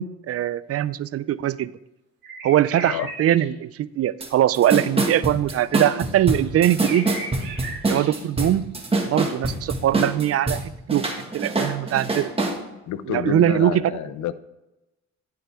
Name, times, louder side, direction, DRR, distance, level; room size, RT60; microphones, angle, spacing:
voice 1, 0.0-1.7 2.4-7.1 7.9-8.8 9.0-11.0 11.3-12.3 13.1-13.9, right 12 dB, 50° right, 17 dB, 0.4 m, -22 dB
sound 1, 2.2-3.5 5.8-8.6 9.0-9.1, right 2 dB, 35° right, 2.6 m, -37 dB
sound 2, 4.2-4.3 4.5-10.6 10.9-12.6, right 2 dB, 20° right, 1.7 m, -24 dB
voice 2, 12.9-14.3, left 12 dB, 70° left, 15 dB, 0.6 m, -29 dB
10.5 x 7.9 x 3.5 m, 0.99 s
cardioid pair, 90°, 30 cm